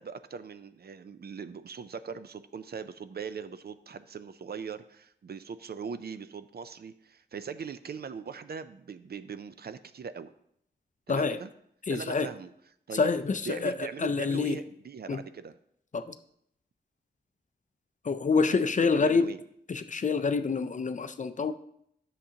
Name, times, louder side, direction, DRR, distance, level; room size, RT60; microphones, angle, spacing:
voice 1, 0.0-10.3 11.1-11.5 11.9-12.5 12.9-13.1 13.4-15.6 18.5-18.6 18.9-19.4, right 6 dB, 60° right, 12 dB, 0.5 m, -40 dB
voice 2, 11.9-12.3 12.9-13.7 14.0-14.6 15.1-15.2 15.9-16.2 18.0-19.3 19.7-21.5, left 4 dB, 45° left, 11 dB, 0.4 m, -27 dB
10.0 x 6.7 x 2.8 m, 0.72 s
wide cardioid pair, 95°, 18 cm